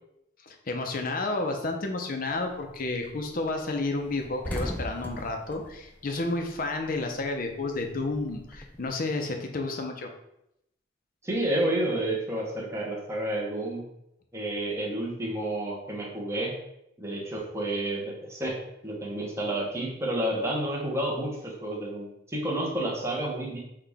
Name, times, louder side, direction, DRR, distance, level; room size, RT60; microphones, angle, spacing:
voice 1, 0.5-10.1, left 2 dB, 50° left, 3 dB, 0.7 m, -31 dB
sound 1, 2.3-2.7 3.1-3.2 3.5-3.6 3.9-6.9 7.2-8.9, left 1 dB, 10° left, 0.3 m, -38 dB
voice 2, 11.2-13.8 14.3-16.5 17.0-18.6 18.8-23.6, right 1 dB, 15° right, -3 dB, 0.9 m, -30 dB
5.7 x 2.4 x 3.5 m, 0.80 s
head